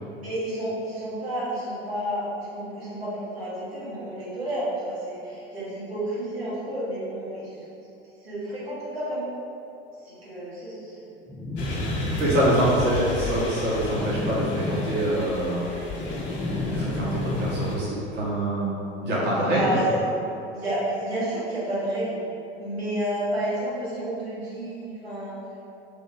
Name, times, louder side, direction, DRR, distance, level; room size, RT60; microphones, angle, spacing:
voice 1, 0.1-7.5 8.2-9.3 10.0-11.1 12.0-12.2 16.3-16.5 19.4-20.0 20.5-22.2 22.6-25.4, right 1 dB, 80° right, -10 dB, 1.5 m, -30 dB
sound 1, 11.3-12.8 13.8-15.3 15.7-18.1, left 2 dB, 5° left, 0.5 m, -31 dB
sound 2, 11.6-17.8, left 1 dB, 35° left, 1.0 m, -33 dB
voice 2, 12.2-15.7 16.7-18.7 19.0-19.8, right 1 dB, 35° right, -7 dB, 1.2 m, -25 dB
3.5 x 3.1 x 4.3 m, 2.8 s
figure-of-eight pair, 75°, 30 cm